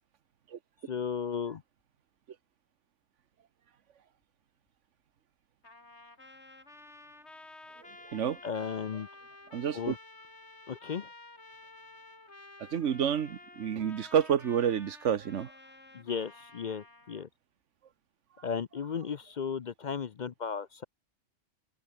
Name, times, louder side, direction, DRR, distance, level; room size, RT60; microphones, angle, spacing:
voice 1, 0.9-1.6 8.4-9.1 9.7-10.0 10.7-11.1 15.9-17.3 18.4-20.8, left 6 dB, 50° left, 0.7 m, -35 dB
Trumpet, 5.6-17.3, left 2 dB, 65° left, 4.8 m, -52 dB
voice 2, 9.5-9.9 12.7-15.5, right 8 dB, 85° right, 1.4 m, -29 dB
omnidirectional pair, 1.2 m